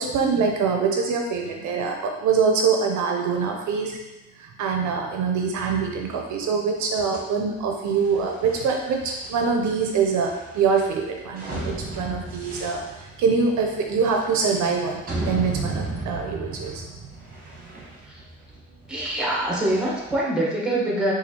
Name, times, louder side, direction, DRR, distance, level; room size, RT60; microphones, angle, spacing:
voice 1, 0.0-4.0 4.4-16.8, right 5 dB, 70° right, 2 dB, 0.5 m, -24 dB
sound 1, 6.9-20.2, right 2 dB, 30° right, 1.1 m, -36 dB
voice 2, 18.9-21.1, right 1 dB, 5° right, -4 dB, 1.2 m, -24 dB
4.1 x 2.5 x 2.8 m, 1.0 s
cardioid pair, 90°, 30 cm